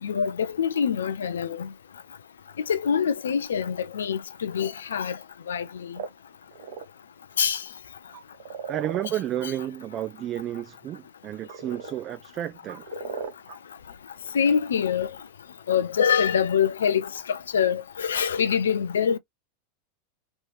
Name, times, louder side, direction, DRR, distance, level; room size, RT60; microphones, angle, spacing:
voice 1, 0.0-1.7 2.7-5.2 5.5-6.0 7.4-7.6 9.4-9.5 12.9-13.1 14.3-15.2 15.7-19.2, left 7 dB, 75° left, 0.5 m, -25 dB
sound 1, 6.0-6.1 6.5-6.8 8.1-9.5 11.3-12.0 12.7-13.6, right 7 dB, 60° right, 1.1 m, -36 dB
voice 2, 8.7-12.8, right 12 dB, 35° right, 0.5 m, -32 dB
3.1 x 3.1 x 3.2 m
figure-of-eight pair, 90°, 0 cm